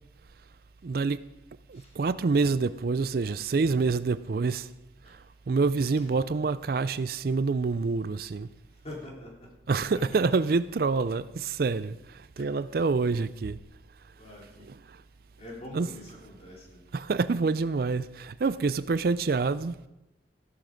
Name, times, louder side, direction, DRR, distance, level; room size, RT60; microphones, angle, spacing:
voice 1, 0.8-1.2 1.7-4.7 5.1-8.5 9.7-13.6 14.6-15.0 15.7-15.9 16.9-19.7, right 4 dB, 50° right, 0.4 m, -27 dB
voice 2, 8.8-9.5 9.8-10.2 12.4-12.6 14.2-14.7 15.4-16.8, left 1 dB, 35° left, 3.3 m, -44 dB
14.5 x 12.0 x 5.1 m
head